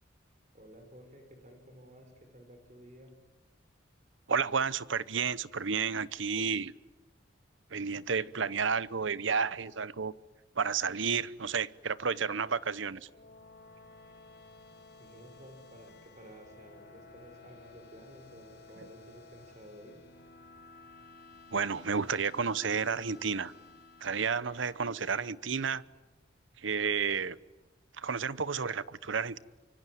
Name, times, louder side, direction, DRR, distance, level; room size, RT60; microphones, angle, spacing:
voice 1, 0.5-3.1 15.0-20.0, equal, 40° right, 5.3 m, -53 dB
voice 2, 4.3-6.7 7.7-10.1 10.6-13.1 21.5-23.5 24.0-25.8 26.6-27.4 28.0-29.4, right 6 dB, 75° right, 0.9 m, -31 dB
sound 1, 12.9-25.2, left 3 dB, 55° left, 4.3 m, -55 dB
25.5 x 24.5 x 9.4 m
head